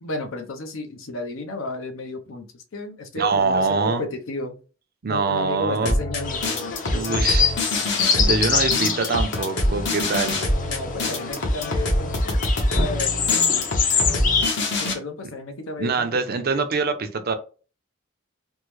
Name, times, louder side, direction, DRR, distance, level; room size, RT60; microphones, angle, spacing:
voice 1, 0.0-4.5 5.1-6.4 6.9-7.5 8.4-8.5 10.6-12.5 12.8-13.5 14.0-14.2 14.8-16.2, left 2 dB, 80° left, 5 dB, 0.7 m, -33 dB
voice 2, 3.2-4.0 5.0-5.9 6.9-7.5 8.2-10.4 15.8-17.3, right 4 dB, 50° right, 8 dB, 0.5 m, -24 dB
sound 1, 5.8-14.9, left 1 dB, 60° left, 0.9 m, -25 dB
sound 2, 6.2-14.5, left 6 dB, 40° left, 0.6 m, -25 dB
3.6 x 2.1 x 3.0 m, 0.35 s
head